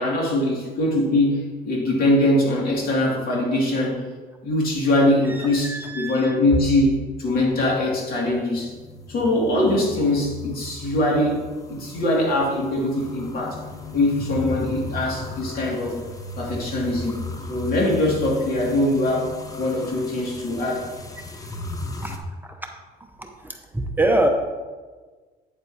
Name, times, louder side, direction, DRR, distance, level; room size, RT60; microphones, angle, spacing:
voice 1, 0.0-4.1 4.4-8.7 9.1-13.6 13.9-16.0 16.4-17.2 17.5-20.9, left 1 dB, 60° left, -2 dB, 2.4 m, -22 dB
voice 2, 5.3-6.4 11.8-11.9 22.0-22.7 23.2-24.3, right 1 dB, 10° right, 3 dB, 0.7 m, -26 dB
sound 1, 7.0-22.2, left 3 dB, 20° left, 0.8 m, -36 dB
8.7 x 7.6 x 2.8 m, 1.4 s
cardioid pair, 110°, 17 cm